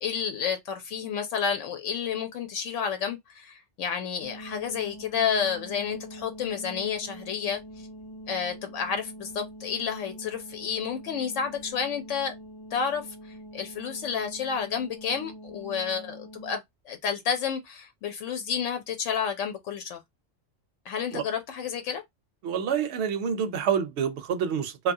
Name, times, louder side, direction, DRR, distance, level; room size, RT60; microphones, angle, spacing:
voice 1, 0.0-7.6 8.3-12.3 12.7-13.1 13.5-20.0 20.9-22.0, left 7 dB, 80° left, 0.9 m, -30 dB
sound 1, 4.2-16.6, right 1 dB, 35° left, 0.3 m, -44 dB
voice 2, 22.4-24.9, right 7 dB, 70° right, 0.9 m, -27 dB
2.7 x 2.3 x 2.6 m
omnidirectional pair, 1.3 m